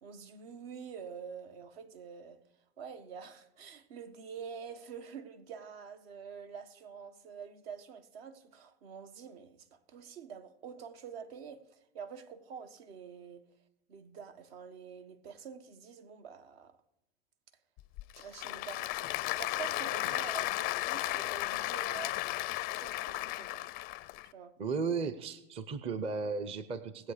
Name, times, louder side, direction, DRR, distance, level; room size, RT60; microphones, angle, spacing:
voice 1, 0.0-2.4 2.8-13.4 13.9-16.8 18.1-22.3 22.7-23.6 24.2-24.6, right 6 dB, 65° right, 1.5 m, -47 dB
Applause / Crowd, 17.8-24.3, left 18 dB, 30° left, 0.4 m, -35 dB
voice 2, 24.6-27.1, right 5 dB, 20° right, 0.6 m, -35 dB
19.5 x 7.9 x 5.0 m
hypercardioid pair, 125°, 32 cm